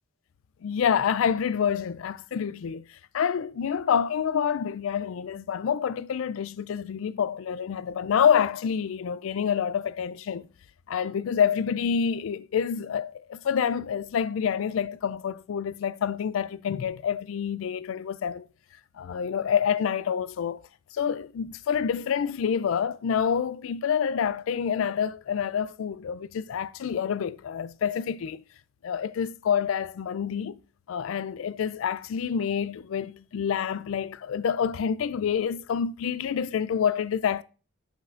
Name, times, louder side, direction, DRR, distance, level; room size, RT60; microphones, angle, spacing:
voice 1, 0.6-2.8 3.1-10.5 10.9-18.5 19.0-20.6 20.9-28.4 28.8-30.6 30.9-37.4, left 7 dB, 70° left, 0.3 m, -27 dB
7.9 x 6.2 x 2.5 m
head